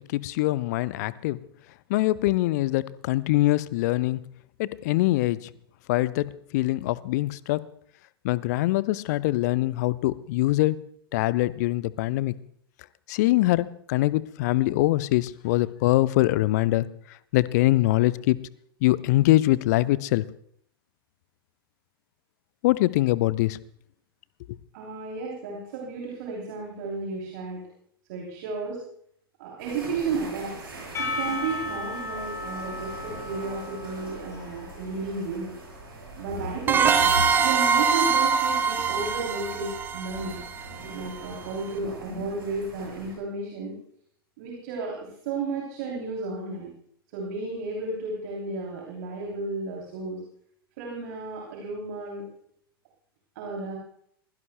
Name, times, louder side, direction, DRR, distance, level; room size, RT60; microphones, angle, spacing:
voice 1, 0.0-1.4 1.9-4.2 4.6-5.5 5.9-7.6 8.2-10.8 11.1-12.3 13.1-16.9 17.3-18.4 18.8-20.2 22.6-23.6, left 17 dB, 45° left, 19 dB, 0.5 m, -23 dB
voice 2, 24.7-27.6 28.1-28.8 29.4-30.5 31.0-35.5 36.2-37.0 37.4-40.4 40.9-43.8 44.4-46.7 47.1-50.2 50.8-52.2 53.3-53.8, right 3 dB, 50° right, -1 dB, 3.1 m, -33 dB
sound 1, 29.6-43.1, right 1 dB, 65° right, 7.7 m, -40 dB
Percussion / Church bell, 30.9-36.0, left 2 dB, 20° left, 4.6 m, -36 dB
sound 2, 36.7-41.2, right 6 dB, 15° right, 1.1 m, -23 dB
23.0 x 16.5 x 2.2 m, 0.66 s
figure-of-eight pair, 95°, 13 cm